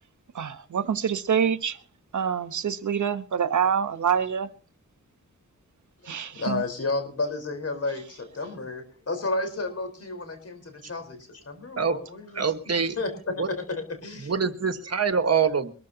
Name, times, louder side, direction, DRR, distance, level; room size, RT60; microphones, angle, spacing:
voice 1, 0.3-1.8 2.1-4.5 6.1-6.6, right 7 dB, 80° right, 11 dB, 1.1 m, -26 dB
voice 2, 6.0-12.5 12.9-14.3, left 3 dB, 55° left, 6 dB, 4.3 m, -32 dB
voice 3, 12.3-13.0 13.4-13.5 14.2-15.7, right 6 dB, 60° right, 9 dB, 1.5 m, -24 dB
22.5 x 14.0 x 2.8 m, 0.39 s
wide cardioid pair, 105°, 29 cm